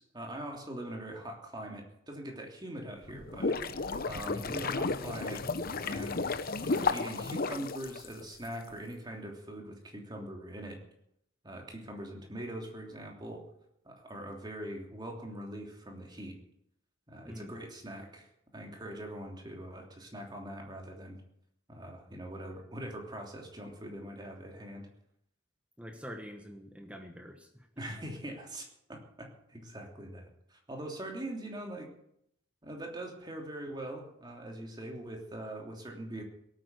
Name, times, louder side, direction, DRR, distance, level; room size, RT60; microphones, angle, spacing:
voice 1, 0.0-5.5 5.8-6.3 6.6-10.8 11.4-13.4 13.8-16.3 17.1-18.3 18.5-21.2 21.7-24.9 27.8-31.9 32.6-36.2, right 1 dB, 20° right, 1 dB, 3.1 m, -42 dB
sound 1, 3.0-8.5, left 3 dB, 50° left, 0.9 m, -33 dB
voice 2, 25.8-27.7, equal, 5° right, 4 dB, 1.3 m, -45 dB
17.5 x 9.0 x 8.2 m, 0.74 s
head